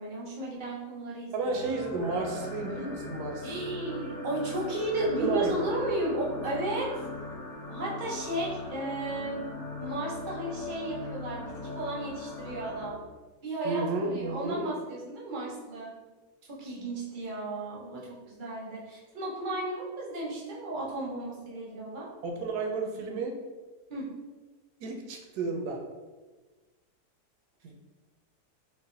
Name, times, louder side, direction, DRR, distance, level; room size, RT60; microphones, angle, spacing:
voice 1, 0.0-1.7 3.4-6.9 7.7-9.5 9.8-13.0 13.4-16.0 16.5-22.1 23.9-24.1, right 2 dB, 50° right, -4 dB, 0.6 m, -34 dB
voice 2, 1.3-3.7 5.2-5.5 13.6-14.6 22.2-23.3 24.8-25.8 27.6-27.7, right 3 dB, 80° right, 2 dB, 1.1 m, -32 dB
sound 1, 1.4-6.8 7.3-7.4 7.6-7.7 8.4-8.5 8.9-9.2, right 3 dB, 45° left, 0.9 m, -45 dB
sound 2, 2.0-12.9, left 3 dB, 80° left, 0.3 m, -40 dB
3.8 x 2.2 x 2.5 m, 1.3 s
omnidirectional pair, 1.7 m